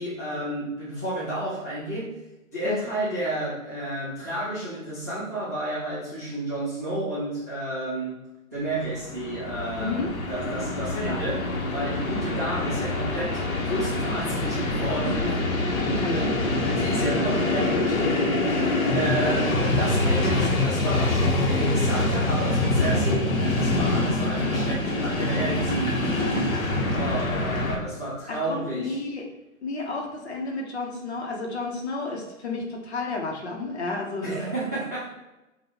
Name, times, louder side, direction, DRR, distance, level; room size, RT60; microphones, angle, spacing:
voice 1, 0.0-2.2 2.5-8.2 8.5-15.3 15.9-29.0 34.2-35.1, right 1 dB, 15° right, -13 dB, 0.5 m, -31 dB
Train, 8.8-27.8, left 2 dB, 75° left, 1.1 m, -25 dB
voice 2, 9.8-10.1 10.9-11.2 15.2-15.4 16.0-16.3 16.5-17.0 19.2-19.4 26.2-26.4 28.3-29.3 29.6-34.5, left 3 dB, 50° left, 0 dB, 1.1 m, -32 dB
5.5 x 2.6 x 2.9 m, 0.98 s
hypercardioid pair, 155°, 42 cm